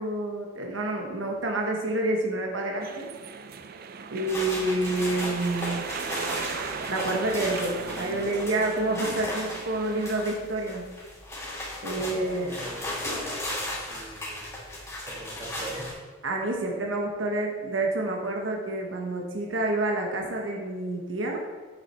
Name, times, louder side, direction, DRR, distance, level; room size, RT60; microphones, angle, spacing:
voice 1, 0.0-3.1 4.1-5.8 6.9-10.9 11.8-12.5 16.2-21.4, right 2 dB, 85° right, 1 dB, 1.0 m, -28 dB
sound 1, 2.8-10.2, right 5 dB, 50° right, 0.4 m, -37 dB
sound 2, 4.3-15.9, left 1 dB, 15° left, 2.4 m, -36 dB
voice 2, 12.0-14.6 15.0-15.9, right 1 dB, 20° right, -5 dB, 2.1 m, -41 dB
7.5 x 6.5 x 4.3 m, 1.4 s
head